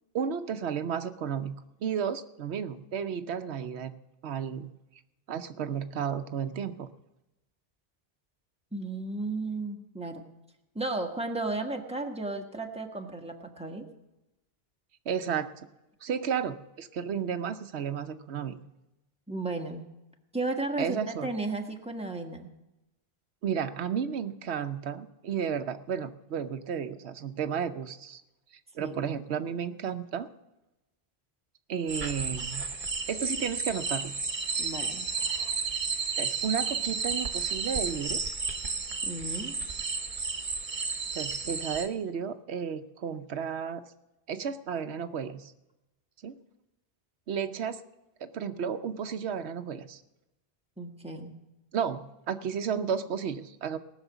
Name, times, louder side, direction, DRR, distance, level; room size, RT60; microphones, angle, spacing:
voice 1, 0.1-1.6 1.8-3.9 4.2-4.7 5.3-6.9 15.1-15.5 16.0-18.6 20.8-21.3 23.4-28.2 28.7-30.3 31.7-32.7 33.1-34.1 35.3-35.4 36.2-38.2 41.1-43.8 44.3-45.5 46.2-46.4 47.3-47.8 48.2-50.0 51.7-53.8, right 7 dB, 90° right, 10 dB, 1.0 m, -33 dB
voice 2, 8.7-10.3 10.7-13.9 19.3-19.9 20.3-22.5 28.8-28.9 34.6-35.1 39.0-39.6 50.8-51.4, right 2 dB, 5° right, 2 dB, 1.3 m, -34 dB
sound 1, 31.9-41.9, right 4 dB, 50° right, 1.3 m, -32 dB
18.5 x 6.4 x 8.1 m, 0.96 s
omnidirectional pair, 1.1 m